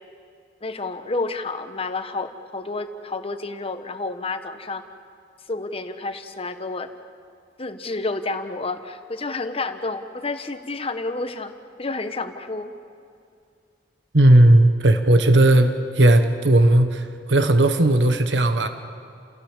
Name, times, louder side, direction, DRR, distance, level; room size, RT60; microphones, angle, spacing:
voice 1, 0.6-4.8 5.5-6.9 7.6-11.5 11.8-12.7, left 3 dB, 35° left, 9 dB, 1.3 m, -30 dB
voice 2, 14.1-18.7, right 1 dB, 80° right, 8 dB, 1.3 m, -16 dB
30.0 x 16.5 x 7.5 m, 2.3 s
head